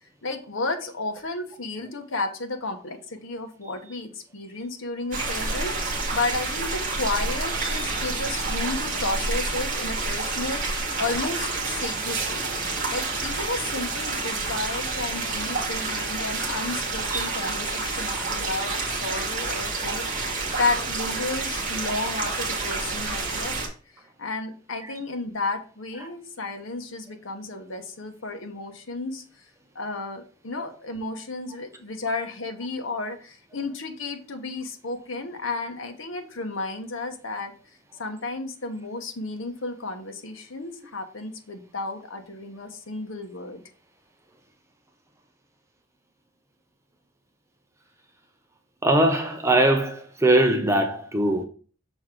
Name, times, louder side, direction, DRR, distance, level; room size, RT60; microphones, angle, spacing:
voice 1, 0.2-12.5 12.9-23.6 24.2-29.2 29.7-37.5 38.0-43.6, left 3 dB, 80° left, 1.0 m, -32 dB
sound 1, 5.1-23.7, right 3 dB, 40° right, 2.1 m, -29 dB
voice 2, 48.8-51.4, right 1 dB, 15° right, 0.7 m, -21 dB
6.2 x 4.5 x 3.8 m
head